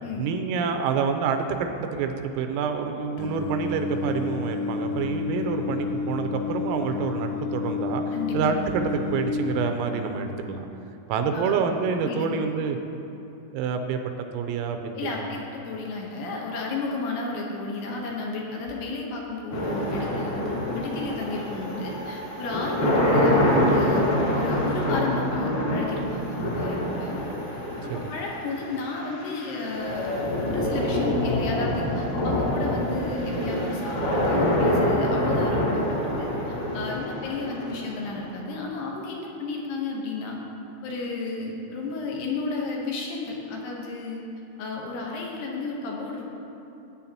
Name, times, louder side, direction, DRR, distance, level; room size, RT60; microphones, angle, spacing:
voice 1, 0.2-10.7 11.1-12.8 13.5-14.0 14.3-15.3 27.9-28.1, right 6 dB, 90° right, 5 dB, 3.3 m, -27 dB
Singing, 3.2-9.7, left 5 dB, 90° left, 3.6 m, -30 dB
voice 2, 11.3-11.7 12.0-12.4 15.0-24.1 24.3-27.2 27.8-30.1 30.5-40.4 40.8-44.2 44.6-46.3, left 3 dB, 70° left, -1 dB, 2.6 m, -32 dB
sound 1, 19.5-38.5, left 1 dB, 45° left, 3.2 m, -26 dB
19.5 x 9.1 x 2.9 m, 2.8 s
omnidirectional pair, 6.0 m